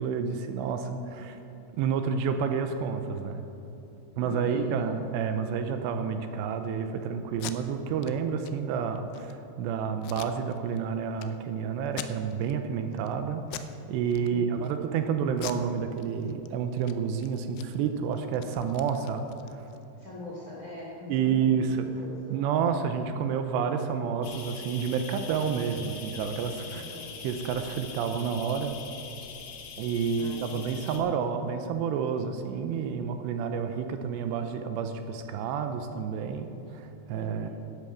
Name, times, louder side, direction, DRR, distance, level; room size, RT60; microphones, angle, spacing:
voice 1, 0.0-0.8 1.1-1.4 1.8-3.4 4.2-19.6 21.1-21.9 22.3-26.8 27.2-28.8 29.8-37.5, right 7 dB, 85° right, 7 dB, 2.8 m, -29 dB
voice 2, 0.6-1.3 4.2-5.0 14.3-14.8 19.9-22.4 26.7-27.1 30.1-31.1 37.1-37.5, left 3 dB, 30° left, -5 dB, 2.1 m, -42 dB
Packing tape duct tape, 7.3-7.6 8.0-8.1 8.4-8.5 9.0-9.3 10.0-10.8 11.2-11.3 11.9-12.5 12.9-13.1 13.5-13.8 14.1-14.7 15.3-16.5 16.8-16.9 17.2-19.8, left 12 dB, 90° left, 2.9 m, -42 dB
sound 1, 24.2-31.0, left 6 dB, 70° left, 2.5 m, -43 dB
11.5 x 10.5 x 5.7 m, 3.0 s
omnidirectional pair, 5.1 m